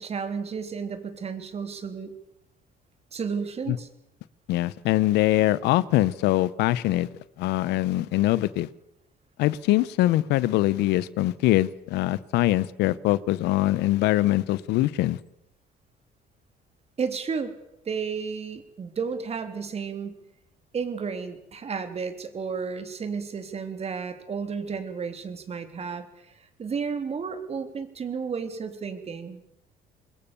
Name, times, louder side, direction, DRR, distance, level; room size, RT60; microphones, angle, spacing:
voice 1, 0.0-2.1 3.1-3.9 17.0-17.6 17.9-20.2 20.7-26.3 26.6-29.4, right 5 dB, 40° right, 8 dB, 3.6 m, -32 dB
voice 2, 4.5-7.1 7.4-8.7 9.4-15.2, left 16 dB, 85° left, 18 dB, 1.0 m, -23 dB
26.5 x 21.5 x 7.1 m, 0.83 s
cardioid pair, 110°, 17 cm